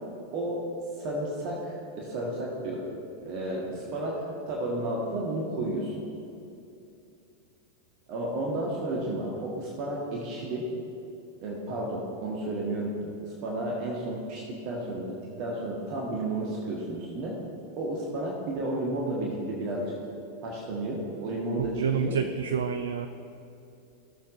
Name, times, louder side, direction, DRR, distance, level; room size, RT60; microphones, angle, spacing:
voice 1, 0.3-0.6 1.0-2.9 3.2-5.9 8.1-10.7 11.4-17.4 17.8-19.8 20.4-22.1, right 1 dB, 40° right, -3 dB, 1.5 m, -32 dB
voice 2, 21.6-23.1, right 7 dB, 65° right, 8 dB, 0.4 m, -28 dB
16.0 x 7.1 x 2.6 m, 2.7 s
figure-of-eight pair, 90°, 0 cm